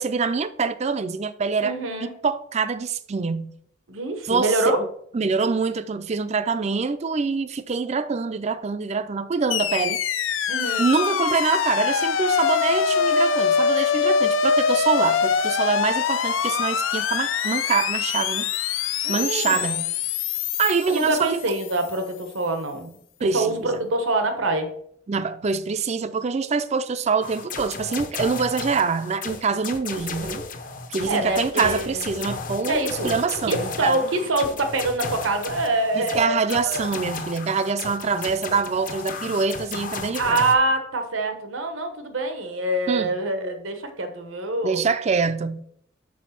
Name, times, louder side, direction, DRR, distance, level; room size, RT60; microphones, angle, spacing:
voice 1, 0.0-1.7 2.0-3.6 4.3-4.9 5.1-10.0 10.8-18.5 19.1-19.9 20.6-21.4 23.2-23.7 25.1-30.4 30.9-34.0 35.9-40.4 42.9-43.1 44.6-45.6, right 5 dB, 35° right, 0.4 m, -25 dB
voice 2, 1.6-2.1 3.9-4.8 10.5-10.9 19.0-19.8 20.9-24.7 31.1-32.0 32.7-33.1 33.4-36.9 40.1-44.8, right 2 dB, 85° right, 1.1 m, -25 dB
sound 1, 9.5-21.7, left 6 dB, 85° left, 0.5 m, -24 dB
sound 2, 27.2-40.5, left 4 dB, 45° left, 0.7 m, -34 dB
6.2 x 4.9 x 5.8 m
head